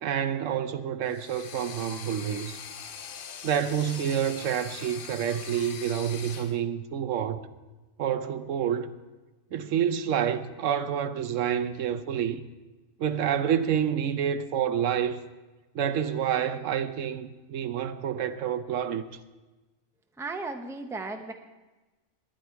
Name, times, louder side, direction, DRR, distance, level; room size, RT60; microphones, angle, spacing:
voice 1, 0.0-2.6 3.4-7.5 8.0-8.9 9.5-12.4 13.0-15.2 15.7-19.0, right 9 dB, 85° right, 1.1 m, -28 dB
sound 1, 1.1-6.6, left 7 dB, 55° left, 0.8 m, -42 dB
voice 2, 20.2-21.3, right 3 dB, 5° right, 0.6 m, -35 dB
19.5 x 10.0 x 4.6 m
omnidirectional pair, 1.3 m